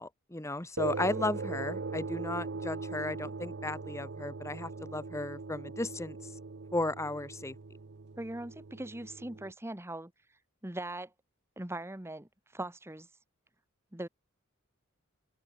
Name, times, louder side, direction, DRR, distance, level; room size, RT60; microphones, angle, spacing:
voice 1, 0.0-6.2 6.7-7.5, left 2 dB, 15° left, 1.2 m, -35 dB
sound 1, 0.8-9.5, right 4 dB, 55° right, 0.7 m, -40 dB
voice 2, 8.2-10.1 10.6-11.1 11.6-13.1 13.9-14.1, right 1 dB, 10° right, 1.3 m, -40 dB
open air
head